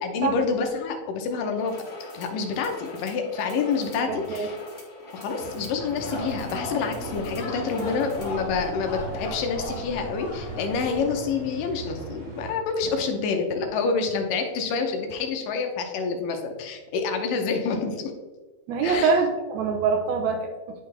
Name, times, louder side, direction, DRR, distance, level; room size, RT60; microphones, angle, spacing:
voice 1, 0.0-1.8 2.1-4.6 5.1-18.1 18.8-19.2, left 5 dB, 75° left, 4 dB, 2.3 m, -27 dB
sound 1, 1.6-8.4, left 2 dB, 35° left, 1.9 m, -43 dB
voice 2, 4.1-4.5 18.7-20.5, right 5 dB, 80° right, 4 dB, 1.6 m, -24 dB
sound 2, 5.4-12.5, right 2 dB, 55° right, 3.7 m, -38 dB
sound 3, 5.8-11.3, left 1 dB, 55° left, 1.7 m, -38 dB
11.0 x 3.7 x 3.2 m, 1.3 s
omnidirectional pair, 4.0 m